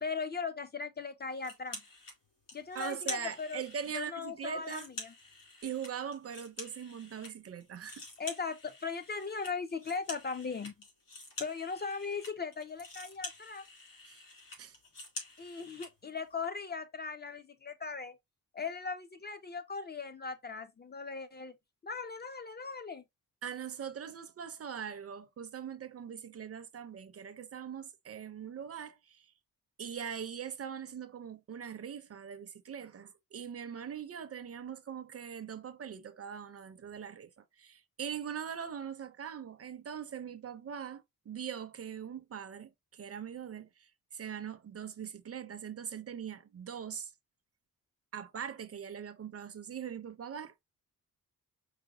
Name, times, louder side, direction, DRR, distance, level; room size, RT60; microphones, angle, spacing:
voice 1, 0.0-1.8 2.5-3.6 3.9-5.1 8.2-10.7 11.4-13.7 15.4-18.2 18.5-21.6 21.8-23.0, left 5 dB, 30° left, 0.4 m, -38 dB
sound 1, 1.4-2.2 2.5-4.0 4.4-7.3 7.6-15.9, left 2 dB, 65° left, 2.5 m, -47 dB
voice 2, 2.7-4.9 5.6-8.0 14.1-14.2 14.6-14.8 23.4-29.3 29.8-47.1 48.1-50.6, right 8 dB, 45° right, 0.6 m, -42 dB
4.9 x 2.1 x 4.8 m
wide cardioid pair, 160°, 35 cm